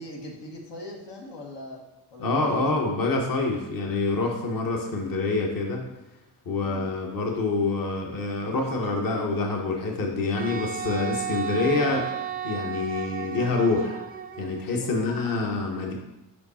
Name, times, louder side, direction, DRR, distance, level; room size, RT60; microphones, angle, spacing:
voice 1, 0.0-1.8 2.1-2.6 6.6-6.9 14.8-15.2, left 1 dB, 85° left, -2 dB, 1.2 m, -41 dB
voice 2, 2.2-5.9 6.5-12.1 12.4-14.0 14.4-15.9, left 3 dB, 55° left, 1 dB, 1.1 m, -26 dB
Wind instrument woodwind instrument, 10.4-14.7, right 8 dB, 25° right, 0.4 m, -33 dB
5.0 x 4.8 x 4.1 m, 1.0 s
cardioid pair, 75°, 40 cm